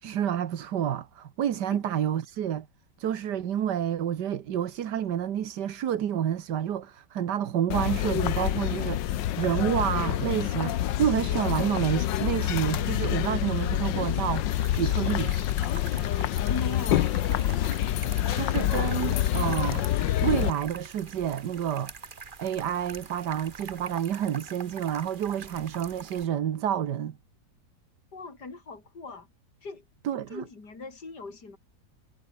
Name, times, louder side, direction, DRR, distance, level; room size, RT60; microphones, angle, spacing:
voice 1, 0.0-2.7 3.0-15.3 18.3-19.8 20.2-21.9 22.4-27.2 30.0-30.4, right 10 dB, 70° right, 1.7 m, -29 dB
sound 1, 7.7-20.5, left 12 dB, 90° left, 1.5 m, -27 dB
sound 2, 14.5-26.2, right 5 dB, 30° right, 1.3 m, -44 dB
voice 2, 16.5-17.6 28.1-29.3 29.6-29.8 30.3-31.6, left 3 dB, 65° left, 4.6 m, -39 dB
omnidirectional pair, 1.9 m